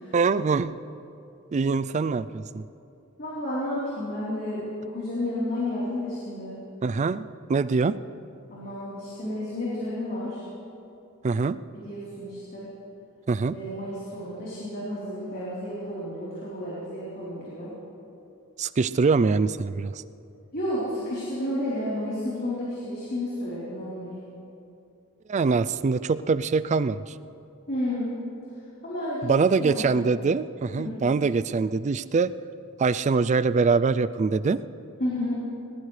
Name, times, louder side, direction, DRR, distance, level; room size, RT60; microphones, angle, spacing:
voice 1, 0.1-0.8 1.5-2.6 6.8-8.0 11.2-11.6 13.3-13.6 18.6-19.9 25.3-27.0 29.2-32.3 32.8-34.6, right 4 dB, 30° right, 15 dB, 0.3 m, -23 dB
voice 2, 3.2-6.5 8.5-10.4 11.7-12.7 13.5-17.7 20.5-24.1 27.7-28.1 28.8-29.3 29.6-30.0 30.8-31.0 35.0-35.4, left 1 dB, 45° left, -9 dB, 3.8 m, -31 dB
21.5 x 19.0 x 3.3 m, 2.7 s
head